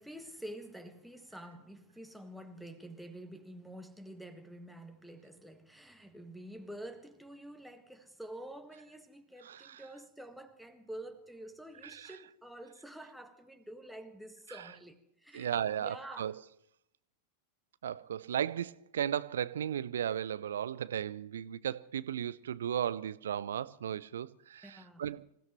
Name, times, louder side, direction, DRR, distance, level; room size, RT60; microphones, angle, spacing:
voice 1, 0.0-15.5 15.8-16.3 24.6-25.0, right 1 dB, ahead, 1.7 m, -48 dB
voice 2, 9.4-9.8 11.8-12.2 14.5-14.6 15.3-16.4 17.8-25.2, right 9 dB, 65° right, 0.5 m, -35 dB
26.5 x 16.0 x 3.1 m
figure-of-eight pair, 90°, 0 cm